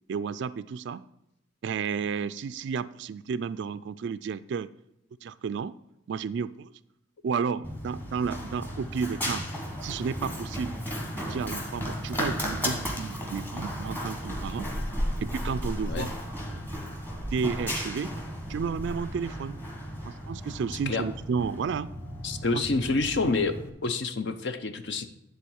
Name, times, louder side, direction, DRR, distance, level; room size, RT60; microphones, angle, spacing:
voice 1, 0.1-1.0 1.6-4.7 5.2-5.8 6.1-6.7 7.2-9.4 9.8-10.7 11.2-14.7 15.2-16.1 17.3-18.1 18.5-19.6 20.1-21.9 22.5-22.6, right 6 dB, 60° right, 14 dB, 0.3 m, -32 dB
Run, 7.6-23.7, equal, 10° left, 1.3 m, -34 dB
voice 2, 22.2-23.5 23.8-25.1, left 3 dB, 60° left, 9 dB, 0.7 m, -27 dB
10.5 x 3.8 x 7.1 m, 0.84 s
head